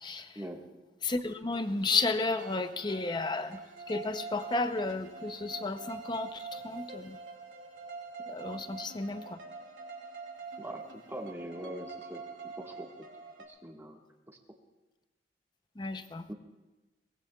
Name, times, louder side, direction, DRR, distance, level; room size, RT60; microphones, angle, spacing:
voice 1, 1.0-3.6 3.9-7.2 8.3-9.4 15.8-16.2, left 3 dB, 25° left, 10 dB, 0.6 m, -32 dB
sound 1, 1.5-13.5, right 4 dB, 85° right, 2.6 m, -45 dB
voice 2, 11.1-12.2 12.6-12.9 13.5-14.0 16.3-16.4, right 1 dB, 15° right, 1 dB, 1.5 m, -41 dB
22.5 x 20.0 x 2.3 m, 1.1 s
head